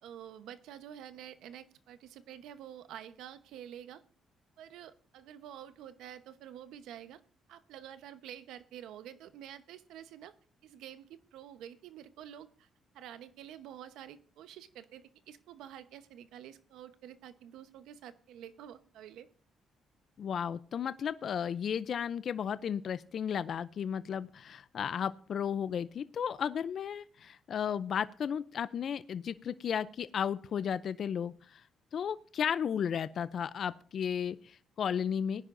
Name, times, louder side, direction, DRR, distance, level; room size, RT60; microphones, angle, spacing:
voice 1, 0.0-4.0 4.6-7.2 7.5-10.3 10.6-12.7 12.9-19.3, right 10 dB, 85° right, 11 dB, 0.9 m, -49 dB
voice 2, 20.2-31.6 31.9-35.4, left 8 dB, 60° left, 15 dB, 0.4 m, -34 dB
18.5 x 10.0 x 2.6 m, 0.42 s
cardioid pair, 90°, 0 cm